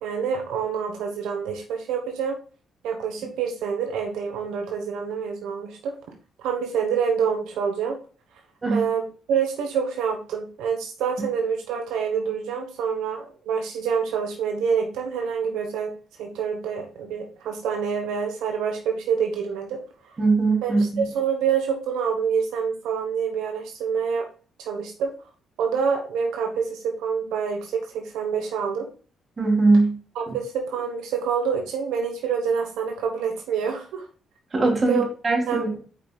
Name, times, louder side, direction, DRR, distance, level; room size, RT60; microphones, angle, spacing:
voice 1, 0.0-2.4 2.8-5.9 6.4-8.0 8.7-20.2 20.6-24.2 24.6-25.1 25.6-28.9 30.1-34.1 34.9-35.0 35.5-35.8, right 6 dB, 90° right, 2 dB, 1.1 m, -27 dB
voice 2, 20.2-21.0 29.4-29.9 30.3-30.4 34.5-35.8, right 3 dB, 35° right, 0 dB, 2.9 m, -21 dB
7.9 x 5.2 x 2.3 m, 0.38 s
cardioid pair, 90°, 0 cm